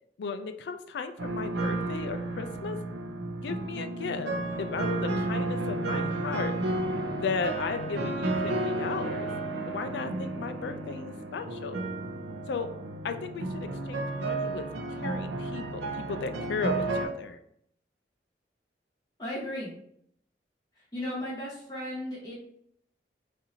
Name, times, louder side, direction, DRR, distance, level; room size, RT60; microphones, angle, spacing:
voice 1, 0.2-2.8 3.3-4.3 4.6-6.5 7.1-9.3 9.7-11.8 12.5-12.7 13.0-17.4, left 5 dB, 75° left, 9 dB, 0.3 m, -35 dB
sound 1, 1.2-17.1, right 2 dB, 85° right, 0.5 m, -32 dB
sound 2, 4.7-9.3, equal, 60° right, 1.0 m, -46 dB
voice 2, 19.2-19.7 20.9-22.3, left 1 dB, 25° left, -7 dB, 1.2 m, -35 dB
4.1 x 2.6 x 2.7 m, 0.70 s
head